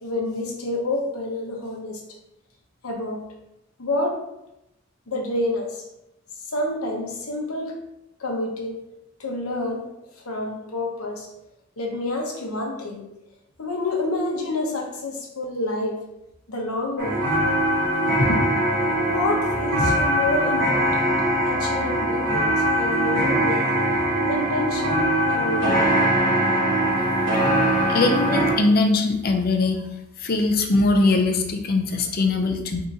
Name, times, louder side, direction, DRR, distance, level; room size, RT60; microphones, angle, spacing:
voice 1, 0.0-2.0 2.8-3.2 3.8-4.2 5.1-5.8 6.5-7.7 8.2-8.8 9.2-9.9 10.2-11.3 11.8-13.1 13.6-16.0 16.5-17.2 18.1-18.4 18.8-21.1 21.4-23.6 23.9-25.8 32.4-32.5, left 2 dB, 85° left, 1 dB, 0.9 m, -28 dB
sound 1, 17.0-28.5, right 1 dB, 60° right, 1.4 m, -22 dB
voice 2, 27.9-29.8 30.2-32.8, left 3 dB, 45° left, 4 dB, 0.5 m, -21 dB
3.6 x 2.8 x 3.9 m, 0.87 s
head